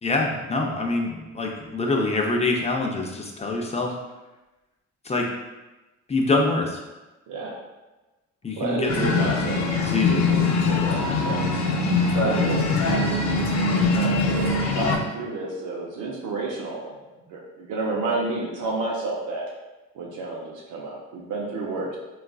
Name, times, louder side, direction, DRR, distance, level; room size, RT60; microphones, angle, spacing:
voice 1, 0.0-3.9 5.1-5.3 6.1-6.8 8.4-9.3 9.9-10.2, left 2 dB, 20° left, 1 dB, 0.5 m, -25 dB
voice 2, 7.3-7.6 8.5-11.4 12.1-17.0 17.3-19.5 19.9-22.0, right 3 dB, 85° right, -3 dB, 0.6 m, -30 dB
sound 1, 8.9-15.0, left 3 dB, 60° left, 0.6 m, -22 dB
3.6 x 2.3 x 2.3 m, 1.1 s
cardioid pair, 90°, 30 cm